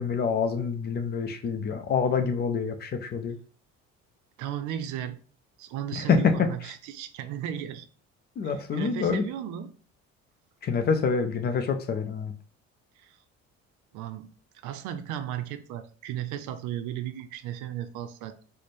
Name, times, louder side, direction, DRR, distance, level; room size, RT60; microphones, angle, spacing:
voice 1, 0.0-3.4 5.9-6.3 8.4-9.2 10.6-12.3, left 5 dB, 35° left, 0.4 m, -26 dB
voice 2, 4.4-5.2 5.6-7.9 8.7-9.8 13.0-13.2 13.9-14.3 14.6-18.4, right 10 dB, 90° right, 0.5 m, -35 dB
3.2 x 2.0 x 4.1 m
cardioid pair, 140°, 29 cm